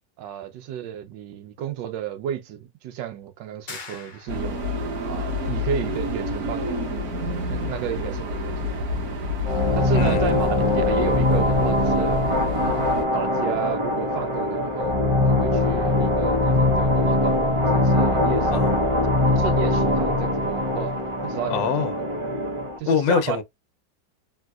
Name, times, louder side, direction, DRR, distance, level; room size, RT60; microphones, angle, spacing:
voice 1, 0.2-4.6 5.0-6.9 7.2-8.8 9.7-12.2 12.6-15.0 15.2-17.4 17.7-18.5 19.3-20.9 21.2-21.9 22.8-23.4, right 10 dB, 80° right, 1.4 m, -32 dB
sound 1, 3.7-4.8, left 4 dB, 55° left, 0.5 m, -40 dB
sound 2, 4.3-13.0, left 2 dB, 55° right, 1.6 m, -29 dB
sound 3, 9.4-22.8, left 1 dB, 40° right, 0.4 m, -22 dB
voice 2, 9.9-10.3 18.5-18.7 21.5-21.9 22.9-23.4, left 6 dB, 85° left, 1.4 m, -23 dB
3.6 x 2.7 x 2.3 m
omnidirectional pair, 2.0 m